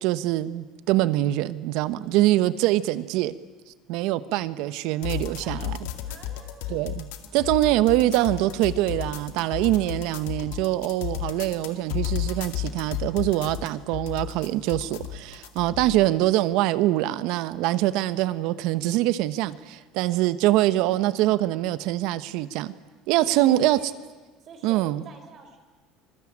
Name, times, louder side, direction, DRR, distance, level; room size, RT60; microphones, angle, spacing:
voice 1, 0.0-3.4 3.9-5.8 6.7-22.7 23.1-23.8 24.6-25.0, right 15 dB, 70° right, 14 dB, 1.1 m, -24 dB
voice 2, 1.8-2.3 5.4-5.7 6.1-6.8 7.3-7.5 23.2-24.0 24.4-25.6, right 4 dB, 45° right, 5 dB, 3.9 m, -46 dB
sound 1, 5.0-16.0, left 12 dB, 90° left, 2.2 m, -33 dB
25.5 x 20.5 x 8.8 m, 1.3 s
cardioid pair, 130°, 0 cm